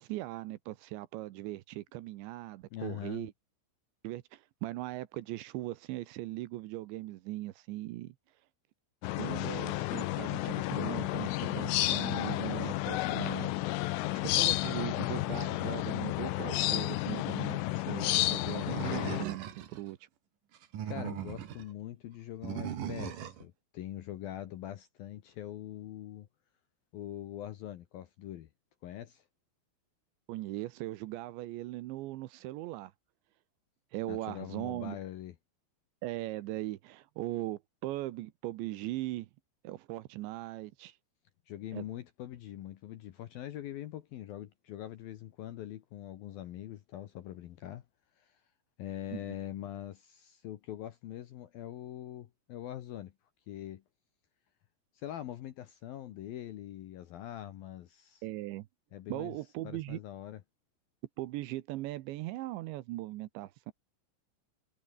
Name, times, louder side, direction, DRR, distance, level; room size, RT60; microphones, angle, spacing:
voice 1, 0.0-3.3 4.0-8.2 9.2-13.5 14.1-20.0 30.3-32.9 33.9-35.0 36.0-39.3 39.6-41.0 41.7-41.8 49.1-49.4 58.2-58.7 59.1-60.0 61.2-63.7, right 17 dB, 75° right, 3.0 m, -39 dB
voice 2, 2.7-3.3 20.9-26.3 26.9-28.5 28.8-29.2 34.1-35.4 41.5-47.8 48.2-48.4 48.8-53.1 53.5-53.8 54.9-58.2 58.9-59.3 59.6-60.4, left 12 dB, 70° left, 2.4 m, -43 dB
sound 1, 9.0-19.2, left 18 dB, 90° left, 3.5 m, -31 dB
Animal, 18.7-19.8 20.6-21.6 22.4-23.4, right 9 dB, 55° right, 2.9 m, -38 dB
omnidirectional pair, 5.6 m